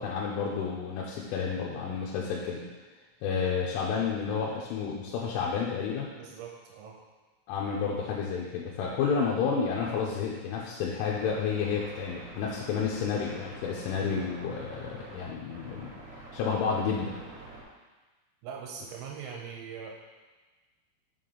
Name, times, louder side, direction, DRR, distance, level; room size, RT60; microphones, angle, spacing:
voice 1, 0.0-2.6 3.2-6.1 7.5-15.9 16.3-17.1, left 6 dB, 85° left, -3 dB, 3.2 m, -30 dB
voice 2, 6.2-6.9 18.4-20.0, right 6 dB, 85° right, 0 dB, 3.0 m, -41 dB
sound 1, 11.0-17.6, right 2 dB, 60° right, 2.1 m, -47 dB
6.8 x 6.0 x 3.8 m, 1.3 s
omnidirectional pair, 5.6 m